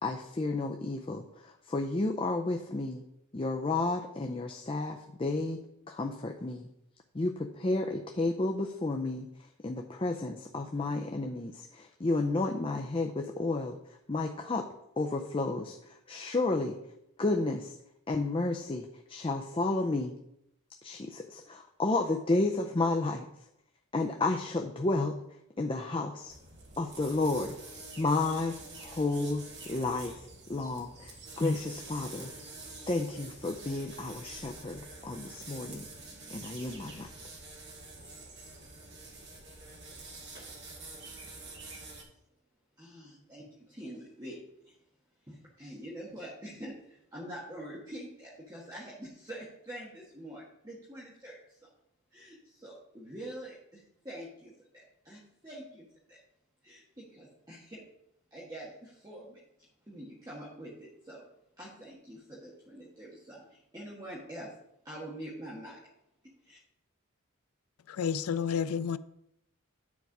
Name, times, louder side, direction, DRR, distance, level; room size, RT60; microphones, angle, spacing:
voice 1, 0.0-3.1 3.3-5.6 5.9-6.7 7.1-17.8 18.1-20.2 20.8-23.5 23.9-26.4 26.8-27.6 28.0-32.3 32.9-35.9 36.3-37.1, left 2 dB, 25° left, 0.5 m, -32 dB
sound 1, 26.3-42.0, right 3 dB, 50° right, 2.0 m, -47 dB
voice 2, 42.8-44.7 45.3-51.6 52.1-56.2 56.6-57.8 58.3-59.4 59.9-61.2 61.6-64.5 64.8-65.8 66.4-66.6, right 1 dB, 15° right, 1.5 m, -45 dB
voice 3, 67.9-69.0, left 7 dB, 85° left, 0.4 m, -30 dB
9.4 x 4.6 x 5.9 m
head